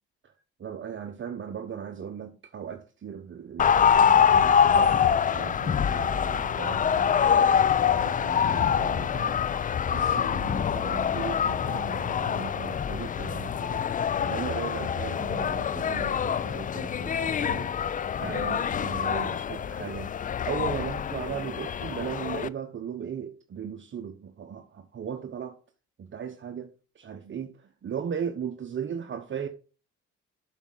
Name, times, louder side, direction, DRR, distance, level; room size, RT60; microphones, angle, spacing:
voice 1, 0.6-9.4 9.9-13.8 14.2-17.7 18.2-20.1 20.5-25.6 26.0-29.5, right 7 dB, 40° right, 0.9 m, -37 dB
sound 1, 3.6-22.5, left 8 dB, 30° left, 0.4 m, -25 dB
7.1 x 6.2 x 3.8 m
supercardioid pair, 60°, 29 cm